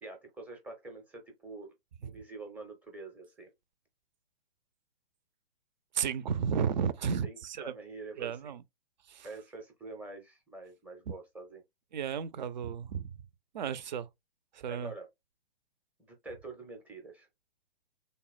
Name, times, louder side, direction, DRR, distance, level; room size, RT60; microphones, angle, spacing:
voice 1, 0.0-1.7 2.0-3.5 7.2-8.6 9.2-11.6 14.7-15.1 16.0-17.3, right 3 dB, 5° right, 0.6 m, -46 dB
voice 2, 5.9-7.7 8.2-8.6 9.1-9.3 11.9-13.1 13.5-14.1 14.5-14.9, right 7 dB, 50° right, 0.5 m, -33 dB
3.5 x 2.1 x 4.1 m
figure-of-eight pair, 120°, 30 cm